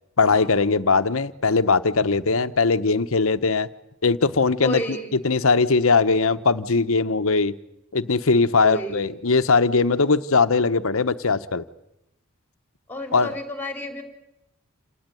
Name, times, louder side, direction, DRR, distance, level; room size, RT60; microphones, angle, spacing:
voice 1, 0.2-3.7 4.0-7.5 7.9-11.6 13.1-13.3, left 4 dB, 65° left, 11 dB, 1.0 m, -20 dB
voice 2, 4.6-5.1 8.5-9.1 12.9-14.0, equal, 10° left, 5 dB, 3.7 m, -32 dB
28.5 x 19.0 x 9.2 m, 0.86 s
head